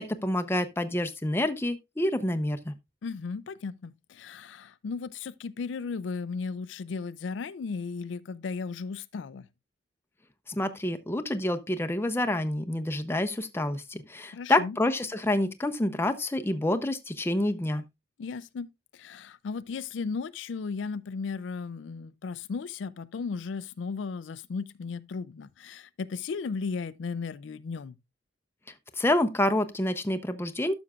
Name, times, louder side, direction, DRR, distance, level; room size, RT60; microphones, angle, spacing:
voice 1, 0.0-2.7 10.5-17.8 29.0-30.7, left 1 dB, 15° left, 0.6 m, -28 dB
voice 2, 3.0-9.5 14.3-14.8 18.2-18.7 18.9-27.9, left 5 dB, 80° left, 0.4 m, -35 dB
12.0 x 6.2 x 2.3 m
head